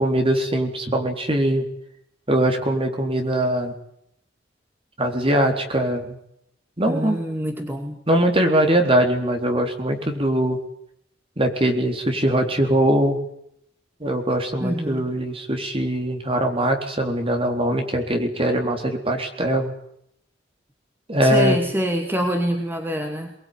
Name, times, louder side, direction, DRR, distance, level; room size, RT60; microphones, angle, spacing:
voice 1, 0.0-1.6 2.3-3.7 5.0-6.2 6.8-7.2 8.1-10.6 11.4-13.2 14.0-19.7 21.1-21.6, right 1 dB, 30° right, 4 dB, 4.0 m, -21 dB
voice 2, 6.9-8.0 14.6-15.0 21.2-23.3, equal, 10° right, 3 dB, 2.4 m, -25 dB
23.5 x 20.5 x 9.8 m, 0.74 s
head